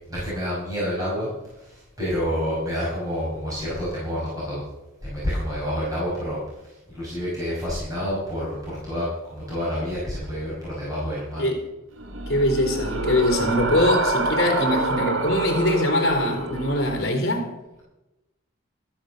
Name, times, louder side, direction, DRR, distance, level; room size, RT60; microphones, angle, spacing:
voice 1, 0.1-4.6 5.0-11.4, equal, 15° right, 5.7 m, -28 dB
sound 1, 12.0-17.1, right 2 dB, 65° right, 1.4 m, -27 dB
voice 2, 12.3-17.5, left 1 dB, 50° left, 3.5 m, -22 dB
13.5 x 10.0 x 6.5 m
head